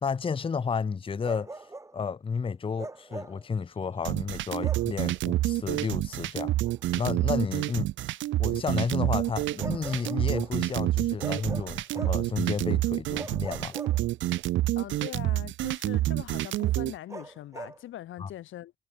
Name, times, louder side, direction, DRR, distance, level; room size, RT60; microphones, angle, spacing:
voice 1, 0.0-1.6 1.9-6.6 6.9-7.9 8.4-13.8 18.2-18.3, left 5 dB, 25° left, 0.7 m, -32 dB
Bark, 1.2-2.0 2.8-3.5 4.6-5.0 6.6-6.8 9.6-10.6 11.2-12.3 13.1-14.4 17.1-17.8, right 2 dB, 15° right, 1.3 m, -42 dB
sound 1, 4.0-16.9, right 15 dB, 75° right, 0.5 m, -28 dB
voice 2, 14.8-18.7, left 13 dB, 80° left, 2.4 m, -42 dB
cardioid pair, 90°, 20 cm